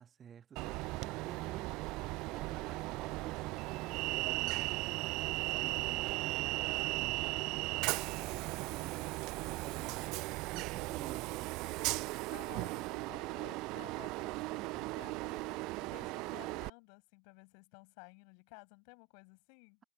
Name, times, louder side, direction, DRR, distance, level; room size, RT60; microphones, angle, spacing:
voice 1, 0.0-1.8 2.3-4.9 5.4-7.3 8.1-11.6, right 8 dB, 30° right, 1.2 m, -53 dB
Train, 0.6-16.7, right 22 dB, 50° right, 0.3 m, -37 dB
voice 2, 5.8-6.6 10.3-10.4 12.3-19.8, left 40 dB or more, 55° left, 6.6 m, -56 dB
figure-of-eight pair, 70°, 0 cm